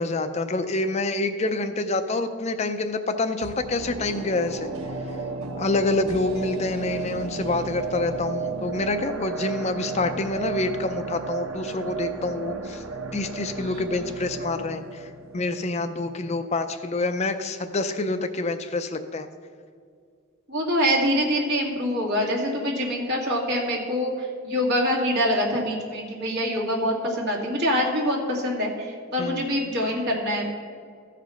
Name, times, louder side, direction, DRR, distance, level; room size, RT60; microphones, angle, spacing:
voice 1, 0.0-4.7 5.6-12.8 13.1-19.3 29.2-29.4, left 2 dB, 30° left, 9 dB, 0.4 m, -27 dB
sound 1, 3.4-16.5 16.8-16.9, right 4 dB, 85° right, 0.9 m, -34 dB
voice 2, 20.5-24.1 24.4-30.5, equal, 50° right, -3 dB, 2.3 m, -25 dB
14.5 x 5.0 x 5.6 m, 2.1 s
head